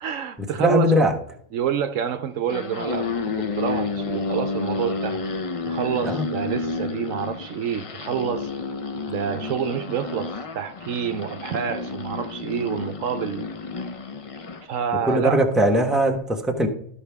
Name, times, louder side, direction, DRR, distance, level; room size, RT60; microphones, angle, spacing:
voice 1, 0.0-1.1 1.5-5.2 5.7-8.5 9.1-13.4 14.6-15.4, right 8 dB, 70° right, 0.9 m, -28 dB
voice 2, 0.6-1.1 6.0-6.3 15.1-16.7, right 1 dB, ahead, 1.0 m, -20 dB
sound 1, 2.3-14.7, left 4 dB, 60° left, 0.3 m, -30 dB
13.0 x 5.4 x 3.4 m
omnidirectional pair, 1.5 m